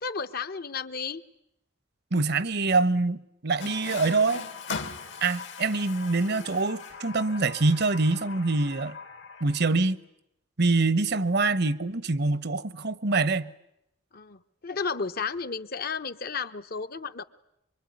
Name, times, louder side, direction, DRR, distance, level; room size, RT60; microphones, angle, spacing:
voice 1, 0.0-1.2 14.1-17.2, left 5 dB, 50° left, 0.9 m, -33 dB
voice 2, 2.1-4.4 5.2-9.0 9.4-10.0 10.6-13.5, right 3 dB, 60° right, 0.9 m, -25 dB
Water tap faucet, 3.6-9.9, left 4 dB, 70° left, 1.9 m, -40 dB
25.0 x 24.0 x 9.6 m
head